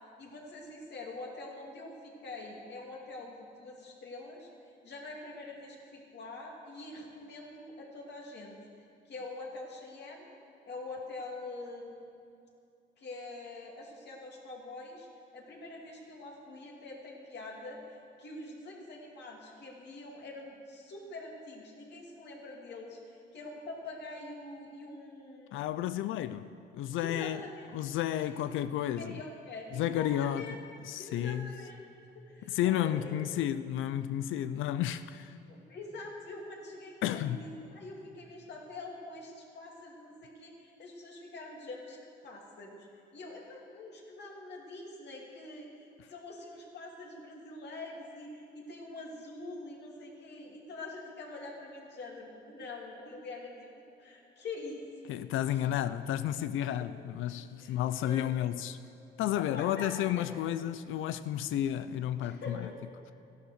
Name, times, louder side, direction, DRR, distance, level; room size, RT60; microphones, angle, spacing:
voice 1, 0.2-4.5 4.8-8.6 9.1-10.3 10.7-12.1 13.0-15.1 15.3-25.6 27.0-27.7 28.2-28.4 29.0-30.6 31.0-31.8 32.1-33.1 35.5-42.0 42.2-54.8 55.5-55.6 57.6-57.8 58.0-58.4 59.3-60.2 62.2-62.7, left 2 dB, 60° left, 2.8 m, -45 dB
voice 2, 25.5-26.5 26.7-27.4 27.7-29.2 29.7-30.6 30.8-31.6 32.4-35.4 37.0-37.4 55.1-58.8 59.2-62.7, left 11 dB, 85° left, 0.5 m, -32 dB
14.0 x 11.5 x 6.5 m
cardioid pair, 90°, 20 cm